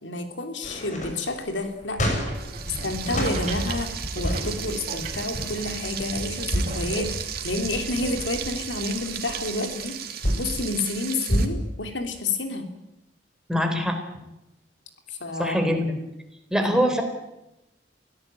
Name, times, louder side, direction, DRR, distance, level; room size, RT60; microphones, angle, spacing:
voice 1, 0.0-2.2 2.8-12.7 15.1-15.7 16.6-16.7, left 2 dB, 85° left, 6 dB, 3.2 m, -30 dB
sound 1, 0.6-3.4 4.0-4.7 5.2-5.6 6.3-6.8 7.4-8.0 8.6-10.5 11.3-11.5, equal, 45° left, 6.1 m, -28 dB
sound 2, 1.8-9.8, right 1 dB, 40° right, 5.0 m, -36 dB
Frying (food), 2.3-11.5, right 9 dB, 55° right, 2.6 m, -35 dB
voice 2, 13.5-14.0 15.4-16.0 16.5-17.0, equal, 5° right, 4 dB, 4.0 m, -23 dB
23.5 x 17.0 x 9.2 m, 0.92 s
head